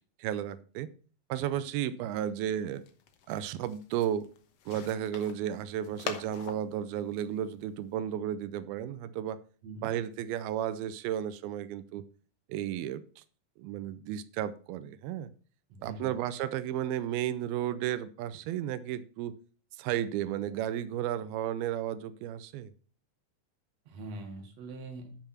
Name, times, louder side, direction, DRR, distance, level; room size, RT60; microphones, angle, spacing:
voice 1, 0.2-0.9 1.3-2.8 3.3-4.2 4.7-9.4 9.8-12.0 12.5-13.2 13.6-15.3 15.8-19.4 19.8-22.7, right 10 dB, 90° right, 14 dB, 2.6 m, -33 dB
sound 1, 2.4-7.9, left 8 dB, 65° left, 1.6 m, -45 dB
voice 2, 15.7-16.2 23.9-25.2, right 2 dB, 50° right, 5 dB, 2.7 m, -43 dB
12.0 x 5.7 x 5.7 m, 0.41 s
omnidirectional pair, 4.2 m